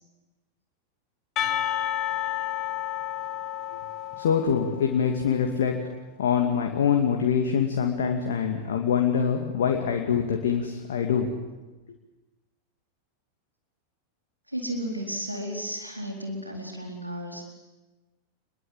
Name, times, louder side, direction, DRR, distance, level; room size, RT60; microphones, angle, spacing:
Percussion, 1.4-5.3, left 12 dB, 35° left, 1.7 m, -31 dB
voice 1, 4.2-5.8 6.2-11.3, left 7 dB, 60° left, 3 dB, 2.5 m, -24 dB
voice 2, 14.5-17.5, equal, 90° right, 1 dB, 4.2 m, -33 dB
27.0 x 22.0 x 8.0 m, 1.1 s
figure-of-eight pair, 90°, 0 cm